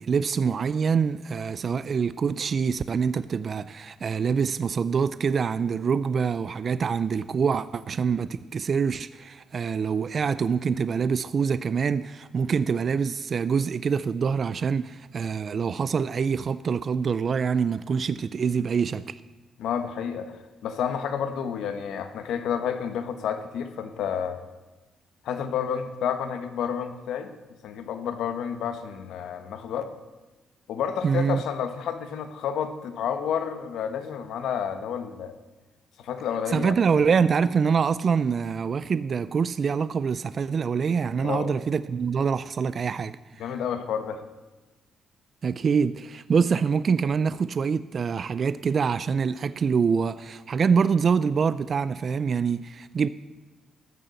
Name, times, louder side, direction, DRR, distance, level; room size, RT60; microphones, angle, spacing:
voice 1, 0.0-19.2 31.0-31.4 36.5-43.4 45.4-53.1, right 6 dB, 40° right, 0.3 m, -25 dB
voice 2, 19.6-20.4 20.6-24.4 25.2-27.3 27.6-29.9 30.7-35.3 36.0-36.8 41.2-41.5 43.4-44.2, left 8 dB, 85° left, 1.1 m, -30 dB
13.5 x 6.7 x 7.8 m
cardioid pair, 155°, 0 cm